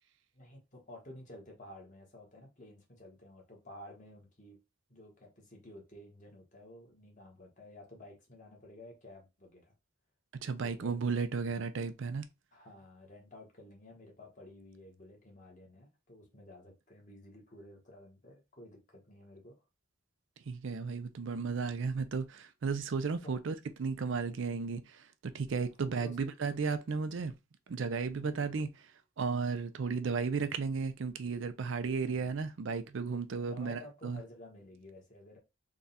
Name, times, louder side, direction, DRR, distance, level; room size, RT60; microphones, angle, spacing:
voice 1, 0.3-4.6 4.9-9.7 10.6-11.0 12.5-19.6 23.2-23.3 25.8-26.2 28.2-28.6 32.0-32.3 33.4-35.4, left 1 dB, 35° left, 1.3 m, -52 dB
voice 2, 10.4-12.2 20.5-27.3 27.7-28.9 29.2-34.2, right 5 dB, 65° right, 0.4 m, -34 dB
3.6 x 2.3 x 4.0 m
head